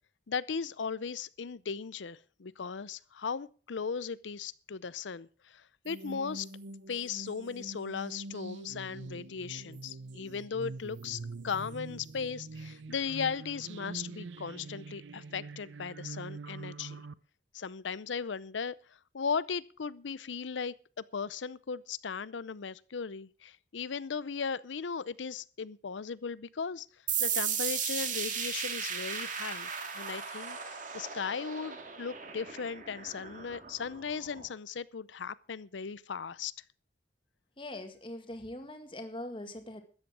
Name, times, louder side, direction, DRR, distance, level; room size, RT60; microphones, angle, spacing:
voice 1, 0.3-6.5 6.9-17.0 17.5-26.9 27.2-36.5, left 6 dB, 90° left, 0.6 m, -37 dB
sound 1, 5.9-17.1, right 3 dB, 85° right, 0.7 m, -44 dB
sound 2, 27.1-34.5, right 7 dB, 45° right, 2.6 m, -36 dB
voice 2, 37.6-39.8, left 1 dB, 30° left, 1.9 m, -42 dB
13.0 x 9.7 x 6.2 m
head